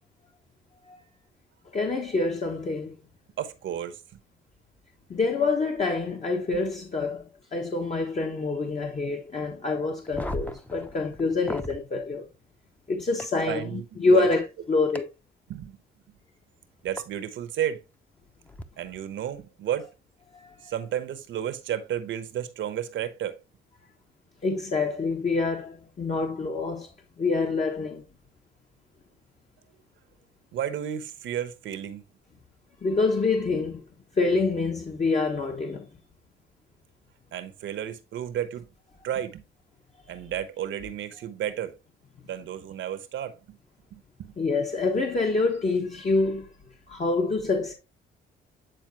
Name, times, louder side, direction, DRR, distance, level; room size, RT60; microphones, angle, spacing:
voice 1, 1.7-3.0 5.1-7.2 7.5-12.3 12.9-15.0 20.3-20.7 24.4-26.9 27.2-28.0 32.8-33.8 34.1-35.9 44.4-46.5 46.9-47.7, left 3 dB, 35° left, 1.2 m, -26 dB
voice 2, 3.4-4.0 13.5-14.3 15.5-15.8 16.8-17.8 18.8-19.9 20.6-23.4 30.5-32.0 37.3-38.7 39.0-39.4 40.1-41.8 42.2-43.6 43.9-44.3, right 10 dB, 75° right, 1.1 m, -32 dB
sound 1, 10.0-11.8 13.2-13.3 14.9-15.0 17.0-17.1 18.5-18.6, left 1 dB, 5° left, 0.8 m, -36 dB
9.1 x 4.2 x 3.0 m
cardioid pair, 90°, 20 cm